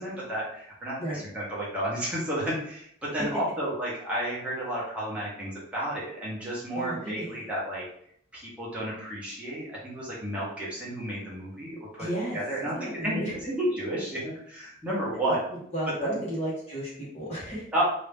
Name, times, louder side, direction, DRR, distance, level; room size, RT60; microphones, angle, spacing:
voice 1, 0.0-1.0 1.3-7.8 8.3-12.1 12.3-15.4 16.0-16.2 17.7-17.8, right 1 dB, 5° right, -7 dB, 1.2 m, -32 dB
voice 2, 6.7-7.4 12.0-12.4 12.7-13.3 15.3-15.4 15.7-17.7, right 1 dB, 30° left, -6 dB, 1.3 m, -33 dB
2.9 x 2.7 x 3.5 m, 0.67 s
head